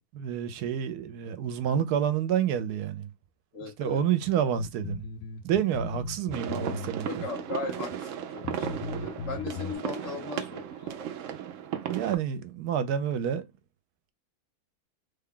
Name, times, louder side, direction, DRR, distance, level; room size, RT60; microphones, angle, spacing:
voice 1, 0.1-3.1 3.8-5.1 5.4-7.1 11.9-13.4, right 9 dB, 85° right, 1.1 m, -28 dB
voice 2, 3.5-4.0 6.6-6.8 7.1-11.0, left 4 dB, 55° left, 1.5 m, -38 dB
sound 1, 4.6-7.2 7.9-8.0 8.4-9.7, left 4 dB, 75° left, 1.1 m, -37 dB
sound 2, 6.3-12.2, right 9 dB, 65° right, 0.8 m, -35 dB
3.5 x 2.3 x 3.6 m
omnidirectional pair, 1.7 m